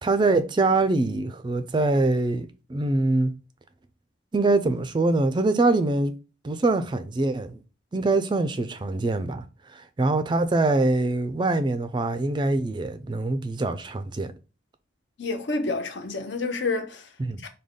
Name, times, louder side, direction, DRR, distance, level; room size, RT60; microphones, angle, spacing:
voice 1, 0.0-3.3 4.3-6.1 6.4-7.6 7.9-9.4 9.7-14.3 17.2-17.4, right 2 dB, 25° right, 0.3 m, -24 dB
voice 2, 15.2-17.0 17.4-17.5, left 3 dB, 70° left, 0.7 m, -28 dB
4.9 x 2.3 x 3.6 m
head